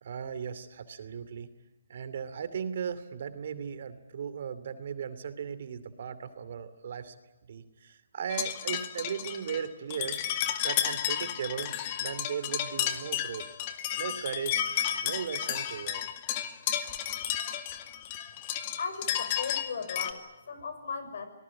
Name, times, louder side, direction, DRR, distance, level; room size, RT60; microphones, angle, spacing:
voice 1, 0.0-1.5 1.9-7.2 7.5-10.2 10.6-13.4 14.0-14.7 15.0-16.1, right 7 dB, 55° right, 12 dB, 2.7 m, -37 dB
sound 1, 8.3-20.1, left 11 dB, 35° left, 2.1 m, -32 dB
voice 2, 18.8-21.2, left 5 dB, 65° left, 10 dB, 6.3 m, -37 dB
27.5 x 19.5 x 8.7 m, 1.1 s
hypercardioid pair, 150°, 0 cm